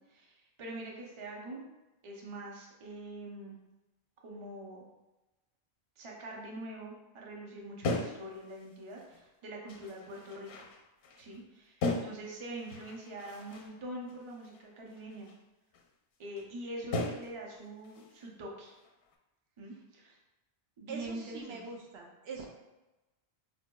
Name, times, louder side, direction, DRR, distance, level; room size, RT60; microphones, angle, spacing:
voice 1, 0.1-1.6 2.0-3.6 4.2-4.8 6.0-10.7 11.2-15.3 16.2-18.7 19.6-20.2 20.8-21.6, right 1 dB, 35° right, -2 dB, 0.5 m, -44 dB
sound 1, 7.8-9.3 9.7-11.4 11.8-13.8 14.1-15.4 15.7-15.9 16.4-16.5 16.9-17.5 17.8-18.3 18.6-19.1, left 2 dB, 85° left, 0.8 m, -38 dB
voice 2, 20.9-22.5, right 4 dB, 75° right, 1 dB, 0.8 m, -43 dB
4.3 x 2.8 x 2.2 m, 1.1 s
omnidirectional pair, 1.1 m